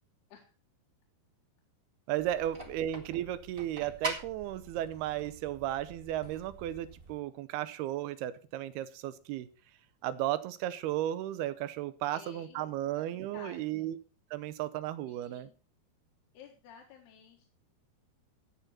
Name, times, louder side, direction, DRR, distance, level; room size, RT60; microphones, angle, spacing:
voice 1, 2.1-9.5 10.0-14.0 14.3-15.5, right 13 dB, 80° right, 15 dB, 2.8 m, -34 dB
sound 1, 2.2-7.2, right 2 dB, 40° right, 0.7 m, -44 dB
voice 2, 12.1-12.7 13.0-13.9 15.1-15.5 16.3-17.5, left 7 dB, 85° left, 1 dB, 3.6 m, -53 dB
14.0 x 9.2 x 4.3 m, 0.35 s
omnidirectional pair, 4.6 m